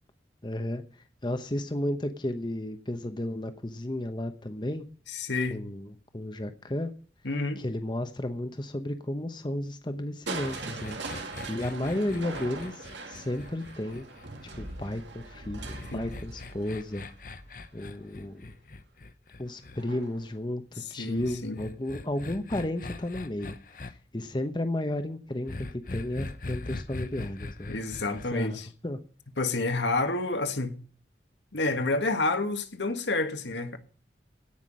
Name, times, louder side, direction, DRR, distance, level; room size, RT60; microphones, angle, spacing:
voice 1, 0.4-0.8 1.2-4.8 5.5-6.9 7.6-11.0 11.5-14.1 14.6-17.1 17.7-18.4 19.4-27.7 28.1-28.6 28.8-29.0, left 1 dB, 25° left, 0.9 m, -33 dB
voice 2, 5.1-5.6 7.2-7.6 15.9-16.1 21.0-21.6 27.7-28.7 29.4-30.8 31.5-33.8, left 2 dB, 80° left, 1.6 m, -29 dB
sound 1, 10.3-14.7 15.7-19.8 21.2-23.9 25.5-28.3, left 2 dB, 50° left, 0.9 m, -41 dB
Crushing, 10.3-18.2 19.8-20.3 20.8-20.9, right 3 dB, 85° right, 2.6 m, -41 dB
17.0 x 6.0 x 8.6 m
head